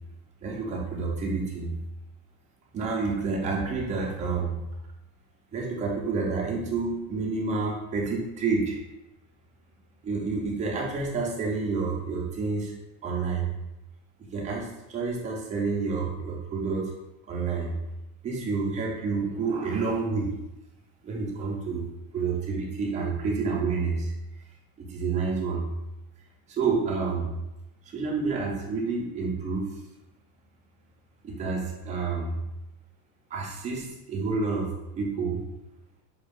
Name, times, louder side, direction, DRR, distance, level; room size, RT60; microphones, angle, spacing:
voice 1, 0.4-1.7 2.7-4.6 5.5-8.8 10.0-12.7 13.0-13.5 14.3-16.9 17.3-17.7 18.2-20.3 21.0-21.8 22.1-24.1 24.8-25.7 26.5-27.3 27.9-29.7 31.2-32.4 33.3-34.7 35.0-35.4, right 4 dB, 15° right, -2 dB, 0.4 m, -29 dB
5.1 x 2.3 x 3.3 m, 0.94 s
supercardioid pair, 145°, 50 cm